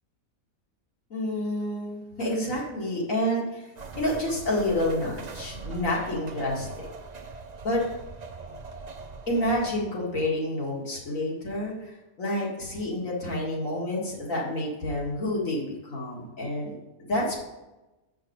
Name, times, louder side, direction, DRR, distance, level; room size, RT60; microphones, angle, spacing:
voice 1, 1.1-3.6 4.0-6.9 7.6-7.8 9.3-11.9 12.2-16.7 17.0-17.4, left 1 dB, 70° left, -4 dB, 2.4 m, -29 dB
sound 1, 3.8-9.7, right 4 dB, 45° right, 0.6 m, -41 dB
7.6 x 5.9 x 4.7 m, 1.0 s
omnidirectional pair, 1.5 m